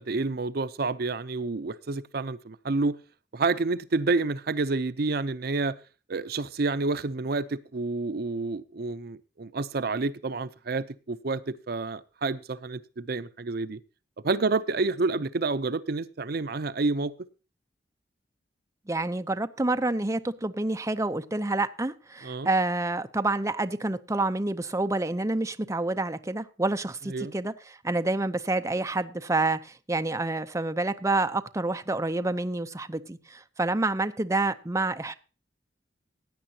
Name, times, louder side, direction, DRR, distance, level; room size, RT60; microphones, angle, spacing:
voice 1, 0.0-2.9 3.3-5.8 6.1-13.8 14.2-17.1 22.2-22.5 27.1-27.3, right 3 dB, 60° right, 0.6 m, -29 dB
voice 2, 18.9-35.1, right 2 dB, 15° right, 0.7 m, -28 dB
16.5 x 9.7 x 2.8 m
head